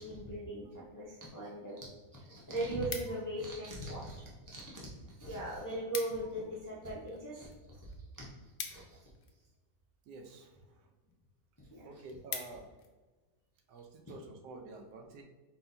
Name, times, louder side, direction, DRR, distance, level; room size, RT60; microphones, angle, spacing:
voice 1, 0.0-1.8 2.3-4.8 5.1-7.5 8.2-8.3 8.7-9.0 11.7-11.8, right 1 dB, 30° left, -6 dB, 0.3 m, -39 dB
sound 1, 1.7-1.8 2.1-3.5 4.2-4.7 5.0-5.1 5.4-5.5 5.7-6.3 6.7-9.5 10.3-10.6 11.1-11.2 11.5-11.6 11.9-12.9 13.4-13.6, left 6 dB, 65° left, 0.6 m, -44 dB
voice 2, 10.1-10.9 11.8-12.7 13.7-15.2, right 3 dB, 85° right, 4 dB, 1.2 m, -49 dB
4.3 x 3.8 x 2.6 m, 1.3 s
omnidirectional pair, 1.7 m